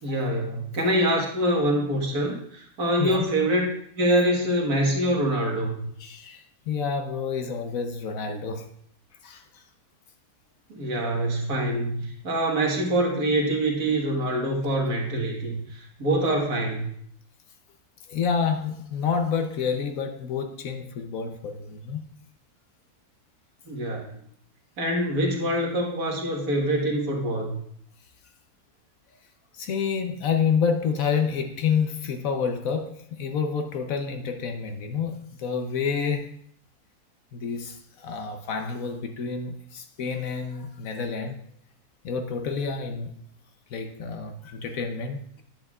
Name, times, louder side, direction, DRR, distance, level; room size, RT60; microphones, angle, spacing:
voice 1, 0.0-3.7 4.0-5.8 10.7-16.9 23.7-24.2 24.8-27.6, right 1 dB, 70° right, -1 dB, 2.0 m, -25 dB
voice 2, 6.0-8.7 9.2-9.6 18.1-22.0 29.5-36.3 37.3-41.4 42.0-43.2 43.7-45.4, left 6 dB, 65° left, 5 dB, 1.1 m, -28 dB
10.5 x 7.9 x 2.4 m, 0.66 s
omnidirectional pair, 1.6 m